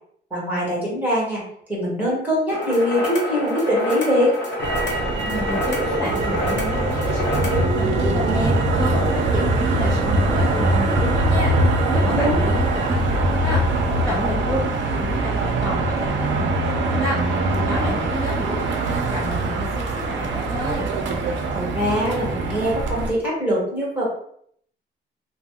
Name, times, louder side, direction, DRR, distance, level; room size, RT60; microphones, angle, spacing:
voice 1, 0.3-1.4 1.7-4.3 11.9-12.4 21.5-24.0, equal, 10° right, -6 dB, 1.3 m, -22 dB
sound 1, 2.5-7.7, left 1 dB, 65° left, 0.9 m, -27 dB
Motor vehicle (road), 4.6-23.1, right 2 dB, 85° right, 0.5 m, -22 dB
voice 2, 5.3-20.9, left 2 dB, 15° left, -8 dB, 0.6 m, -30 dB
2.4 x 2.1 x 3.5 m, 0.66 s
wide cardioid pair, 160°, 19 cm